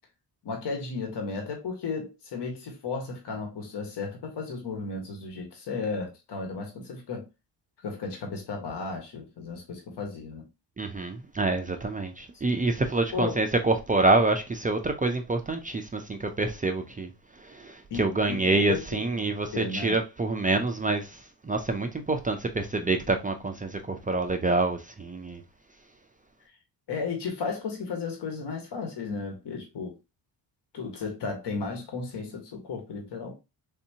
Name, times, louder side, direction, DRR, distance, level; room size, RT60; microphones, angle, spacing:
voice 1, 0.4-7.2 7.8-10.4 13.1-13.4 17.9-19.0 19.5-20.0 26.9-29.9 30.7-33.3, left 4 dB, 60° left, 1.3 m, -34 dB
voice 2, 10.8-17.1 17.6-21.1 21.4-25.4, right 2 dB, 20° right, 0.4 m, -26 dB
3.4 x 2.7 x 2.7 m
cardioid pair, 80°, 48 cm